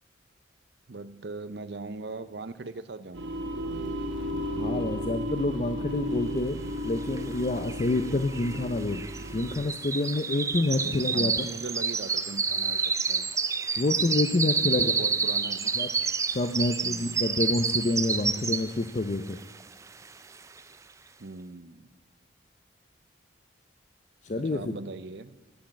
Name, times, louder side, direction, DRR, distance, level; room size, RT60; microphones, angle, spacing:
voice 1, 0.9-3.5 10.6-12.8 13.1-13.3 14.6-15.7 16.8-17.3 21.2-21.9 24.3-25.3, right 3 dB, 60° right, 13 dB, 0.6 m, -40 dB
sound 1, 3.1-9.5, equal, 85° right, 1.1 m, -34 dB
voice 2, 4.6-6.6 6.8-9.0 9.3-11.5 13.8-14.9 15.8-15.9 16.3-19.4 24.2-24.7, left 2 dB, 40° left, 7 dB, 0.5 m, -28 dB
sound 2, 7.2-7.3 7.4-18.9 19.3-19.6 20.0-20.1, right 5 dB, 15° right, 0.3 m, -29 dB
10.5 x 7.6 x 8.7 m, 1.2 s
head